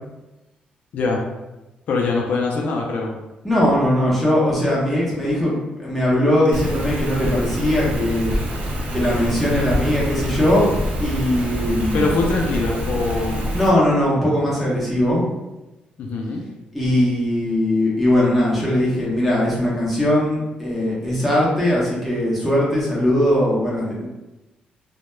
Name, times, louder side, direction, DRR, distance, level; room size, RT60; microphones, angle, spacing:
voice 1, 0.9-1.2 1.9-3.1 11.9-13.6 16.0-16.4, left 3 dB, 60° left, 0 dB, 0.4 m, -23 dB
voice 2, 3.4-8.3 8.9-10.7 11.0-12.1 13.5-15.2 16.7-24.1, left 1 dB, ahead, -7 dB, 0.7 m, -20 dB
Rain, 6.5-13.7, equal, 70° right, 0.6 m, -26 dB
2.2 x 2.1 x 3.0 m, 1.0 s
cardioid pair, 135°, 3 cm